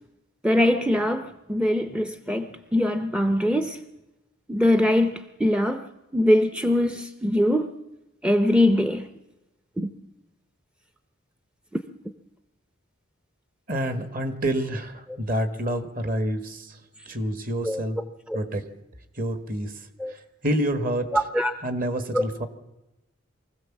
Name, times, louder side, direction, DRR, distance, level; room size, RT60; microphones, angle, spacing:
voice 1, 0.4-3.8 4.5-5.9 6.1-7.8 8.2-9.1 9.8-9.9 17.6-17.8 20.0-20.1 21.1-21.5 22.1-22.2, left 1 dB, 5° right, 0.6 m, -22 dB
voice 2, 13.7-16.8 17.0-18.0 18.3-18.7 19.1-21.2 21.6-22.5, right 1 dB, 45° right, 1.6 m, -28 dB
23.5 x 15.5 x 7.3 m
head